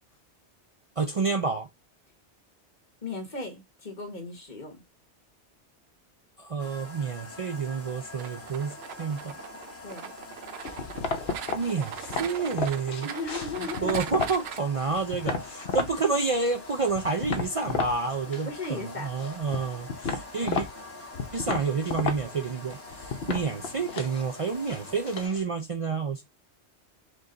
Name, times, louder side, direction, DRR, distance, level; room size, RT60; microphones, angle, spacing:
voice 1, 1.0-1.7 6.4-9.4 11.5-13.1 13.6-20.7 21.3-26.2, right 4 dB, 50° right, 0.4 m, -29 dB
voice 2, 3.0-4.8 9.8-10.1 13.0-14.0 18.4-19.1, left 3 dB, 40° left, 1.5 m, -36 dB
sound 1, 6.6-25.3, left 2 dB, 15° left, 1.0 m, -45 dB
sound 2, 8.2-14.6, right 9 dB, 70° right, 0.8 m, -40 dB
sound 3, 10.6-14.5 14.8-15.9 16.3-18.0 18.2-18.9 19.2-25.4, left 4 dB, 60° left, 1.0 m, -33 dB
5.0 x 2.3 x 3.8 m
omnidirectional pair, 1.2 m